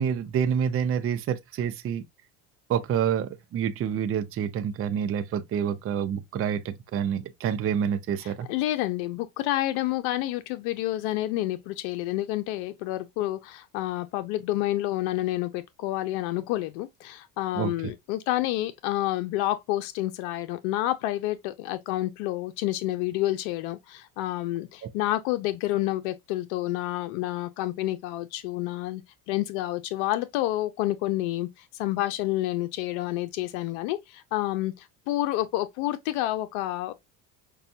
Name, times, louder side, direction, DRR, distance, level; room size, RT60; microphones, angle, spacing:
voice 1, 0.0-2.0 2.7-8.5 17.6-17.7, right 8 dB, 30° right, 0.5 m, -27 dB
voice 2, 8.2-29.0 29.3-36.9, left 15 dB, 75° left, 0.6 m, -29 dB
5.3 x 2.2 x 2.7 m
supercardioid pair, 95°, 44 cm